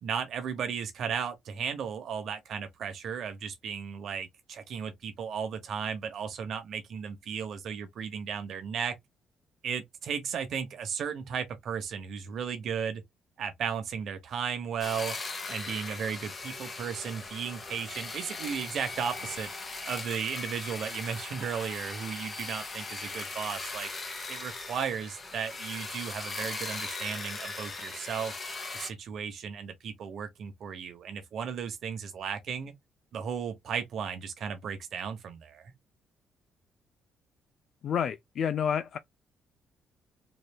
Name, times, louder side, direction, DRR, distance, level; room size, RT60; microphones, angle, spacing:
voice 1, 0.0-8.9 9.6-13.0 13.4-15.2 15.5-19.5 19.8-23.9 24.3-28.3 28.7-32.7 33.1-35.7, right 7 dB, 65° right, 0.9 m, -35 dB
sound 1, 14.8-28.9, left 3 dB, 35° left, 1.7 m, -39 dB
voice 2, 37.8-39.0, left 8 dB, 65° left, 0.4 m, -29 dB
4.0 x 3.2 x 2.3 m
cardioid pair, 90°, 0 cm